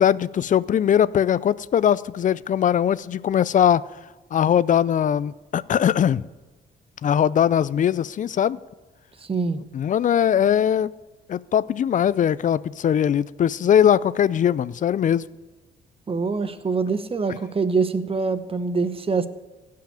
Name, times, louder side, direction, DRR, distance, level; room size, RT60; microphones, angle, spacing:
voice 1, 0.0-3.8 4.3-6.2 7.0-8.6 9.7-10.9 11.3-15.3, left 9 dB, 50° left, 19 dB, 0.4 m, -20 dB
voice 2, 9.2-9.6 16.1-19.3, right 4 dB, 35° right, 11 dB, 1.0 m, -24 dB
16.0 x 5.7 x 9.1 m, 1.2 s
cardioid pair, 85°, 17 cm